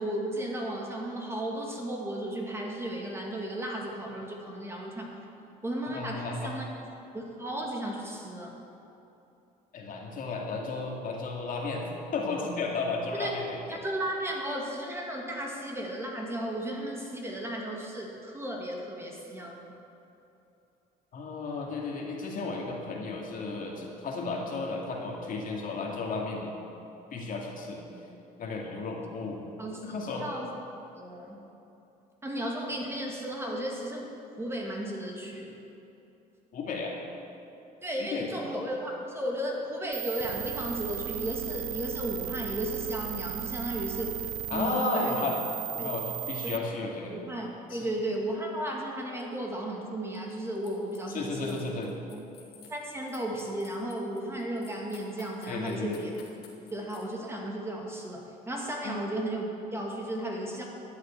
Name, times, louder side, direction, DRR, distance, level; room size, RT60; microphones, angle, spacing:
voice 1, 0.0-5.1 5.6-6.7 7.1-8.5 13.1-13.3 13.7-19.7 29.6-30.5 30.9-31.4 32.2-34.1 34.4-35.5 37.8-45.2 45.8-45.9 46.4-46.6 47.1-51.8 52.1-52.2 52.7-56.1 56.7-60.6, right 1 dB, 15° right, -1 dB, 2.3 m, -34 dB
voice 2, 5.9-6.5 9.7-13.8 21.1-26.5 27.1-27.8 28.4-29.4 29.8-30.3 36.5-36.9 38.1-38.5 44.5-45.4 45.7-47.2 47.7-47.9 51.1-51.9 55.5-56.0 58.8-59.0, left 3 dB, 55° left, -1 dB, 2.4 m, -33 dB
sound 1, 39.9-46.6, right 14 dB, 80° right, 0.5 m, -36 dB
sound 2, 50.1-51.0 51.3-57.0, left 7 dB, 75° left, 2.3 m, -54 dB
12.0 x 8.0 x 8.8 m, 2.9 s
cardioid pair, 110°, 17 cm